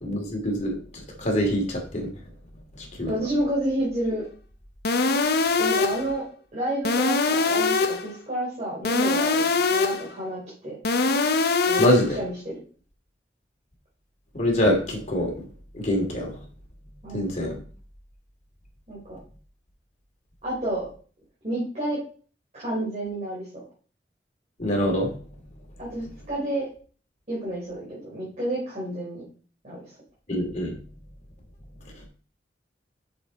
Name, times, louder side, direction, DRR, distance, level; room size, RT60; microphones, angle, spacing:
voice 1, 0.0-2.1 2.8-3.1 11.8-12.2 14.3-15.4 15.7-16.3 17.1-17.5 24.6-25.1 30.3-30.7, equal, 40° left, 0 dB, 2.7 m, -24 dB
voice 2, 3.1-4.2 5.6-6.3 6.5-10.8 11.7-11.9 12.2-12.5 17.0-17.6 18.9-19.2 20.4-20.9 21.4-22.0 22.5-23.6 25.8-26.7 27.3-29.2 29.6-29.8, right 1 dB, 40° right, -8 dB, 3.6 m, -30 dB
sound 1, 4.8-6.1 6.8-8.1 8.8-10.1 10.8-12.1, left 3 dB, 60° left, 0.8 m, -23 dB
7.1 x 6.6 x 4.2 m, 0.41 s
head